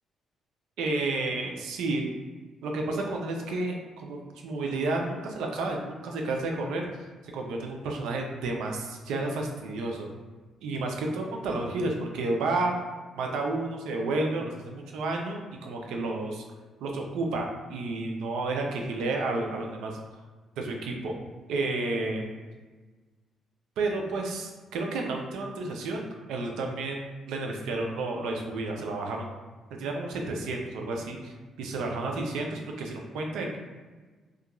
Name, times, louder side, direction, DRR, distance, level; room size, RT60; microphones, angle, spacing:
voice 1, 0.8-2.1 2.6-3.8 4.0-6.9 7.3-10.1 10.6-12.8 13.1-16.4 16.8-20.0 20.6-21.2 21.5-22.2 23.8-27.0 27.3-29.3 29.8-33.6, right 2 dB, 90° right, 1 dB, 0.4 m, -31 dB
2.4 x 2.2 x 2.9 m, 1.3 s
cardioid pair, 90°, 0 cm